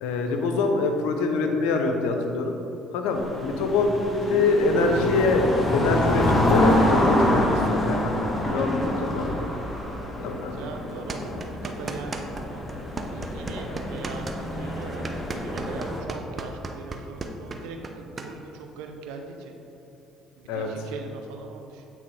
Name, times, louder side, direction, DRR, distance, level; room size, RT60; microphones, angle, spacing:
voice 1, 0.0-2.6 2.9-4.0 4.3-9.3 10.2-10.5 20.5-20.7, left 3 dB, 80° left, 4 dB, 0.7 m, -24 dB
sound 1, 3.1-16.0, left 1 dB, 25° left, 1.5 m, -26 dB
voice 2, 10.2-12.8 13.1-19.5 20.4-21.9, right 4 dB, 80° right, 3 dB, 0.7 m, -40 dB
sound 2, 11.1-12.4 12.7-18.3, right 3 dB, 35° right, 0.7 m, -35 dB
8.6 x 3.5 x 4.8 m, 2.8 s
supercardioid pair, 65°, 0 cm